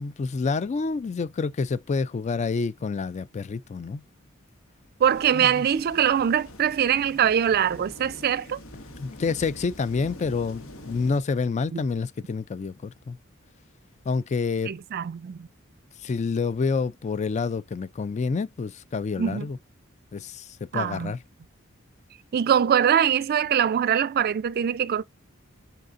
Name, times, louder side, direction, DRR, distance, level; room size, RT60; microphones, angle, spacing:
voice 1, 0.0-4.0 5.3-5.6 9.0-13.2 14.1-14.7 16.0-19.6 20.1-20.5 20.7-21.2, left 4 dB, 35° left, 0.3 m, -28 dB
sound 1, 5.0-11.2, left 1 dB, 80° left, 1.2 m, -44 dB
voice 2, 5.0-8.6 11.7-11.8 14.7-15.5 19.2-19.5 20.7-21.1 22.3-25.0, right 8 dB, 50° right, 0.3 m, -23 dB
5.6 x 3.8 x 2.4 m
head